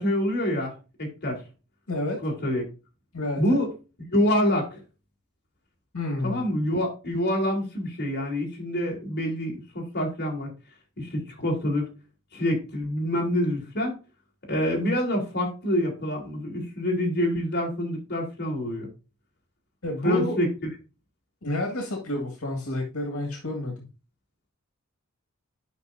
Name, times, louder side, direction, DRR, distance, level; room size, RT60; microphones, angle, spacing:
voice 1, 0.0-1.4 2.2-2.6 3.4-3.7 4.1-4.8 6.2-10.5 11.0-11.9 12.3-14.0 14.5-18.9 20.0-20.5, left 1 dB, 50° left, -1 dB, 3.4 m, -26 dB
voice 2, 1.9-2.2 3.1-3.6 5.9-6.4 19.8-20.4 21.4-23.9, left 1 dB, 80° left, 3 dB, 1.8 m, -30 dB
11.5 x 5.5 x 2.6 m, 0.31 s
head